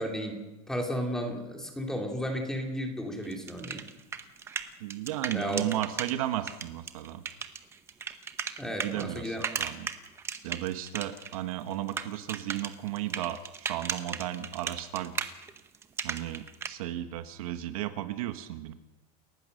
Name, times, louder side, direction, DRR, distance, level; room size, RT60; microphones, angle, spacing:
voice 1, 0.0-3.8 5.3-5.7 8.6-9.5, equal, 5° left, 2 dB, 2.5 m, -33 dB
sound 1, 3.2-6.1 6.5-11.4 11.6-16.7, right 6 dB, 15° right, 0.9 m, -36 dB
voice 2, 4.8-7.2 8.8-9.9 10.4-15.1 16.0-18.7, right 13 dB, 65° right, 9 dB, 1.4 m, -34 dB
29.5 x 14.5 x 6.5 m, 1.0 s
supercardioid pair, 175°, 20 cm